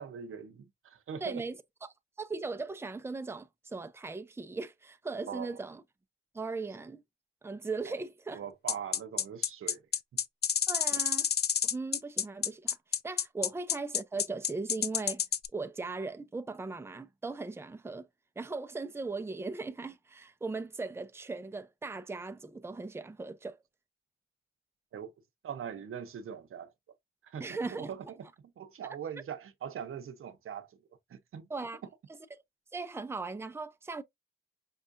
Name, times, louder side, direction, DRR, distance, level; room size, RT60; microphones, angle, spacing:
voice 1, 0.0-1.4 5.3-5.6 7.9-8.0 8.3-9.8 10.9-11.0 24.9-25.1 25.4-26.7 27.2-28.2 28.4-30.8 31.1-31.5, right 8 dB, 80° right, 0.7 m, -42 dB
voice 2, 1.2-1.5 1.8-5.8 6.3-7.0 7.4-8.4 10.7-11.3 11.7-12.8 13.0-15.2 15.5-18.1 18.4-23.6 27.4-27.9 31.5-31.8 32.7-34.0, right 3 dB, 10° right, 0.5 m, -38 dB
sound 1, 8.7-15.5, left 8 dB, 50° left, 0.4 m, -29 dB
5.3 x 2.4 x 2.5 m
cardioid pair, 70°, 21 cm